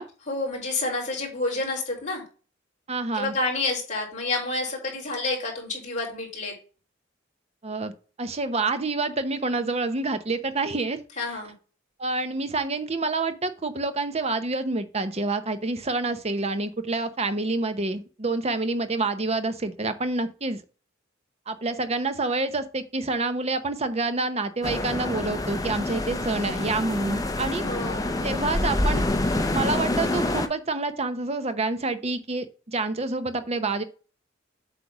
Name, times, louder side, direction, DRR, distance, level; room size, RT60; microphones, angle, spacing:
voice 1, 0.3-2.2 3.1-6.5 11.2-11.5 27.6-28.3, left 2 dB, 40° left, -1 dB, 3.8 m, -29 dB
voice 2, 2.9-3.3 7.6-7.9 8.2-11.0 11.3-11.4 12.0-20.6 21.5-27.6 28.2-29.0 29.5-33.8, right 3 dB, 35° right, 10 dB, 0.8 m, -27 dB
sound 1, 24.6-30.5, left 1 dB, 20° left, 0.8 m, -27 dB
8.1 x 3.4 x 5.9 m, 0.36 s
head